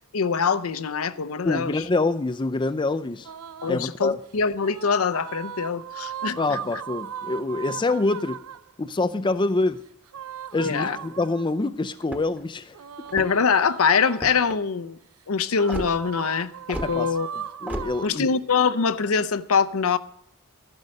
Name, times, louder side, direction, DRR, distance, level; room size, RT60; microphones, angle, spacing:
voice 1, 0.1-1.7 3.6-6.4 10.6-11.0 13.1-15.0 15.3-17.3 18.0-20.0, left 5 dB, 70° left, 0.6 m, -23 dB
voice 2, 1.4-3.3 3.7-4.2 6.4-8.4 8.8-9.8 10.5-12.8 16.8-17.2 17.6-18.3, left 3 dB, 20° left, 0.4 m, -26 dB
sound 1, 3.2-3.9 4.5-8.7 10.1-11.6 12.7-14.4 15.5-18.1, right 8 dB, 75° right, 0.5 m, -38 dB
sound 2, 12.0-12.5 13.0-13.5 14.1-14.6 15.7-15.9 16.7-16.9 17.7-17.9, equal, 5° right, 1.1 m, -33 dB
13.0 x 11.0 x 6.5 m
head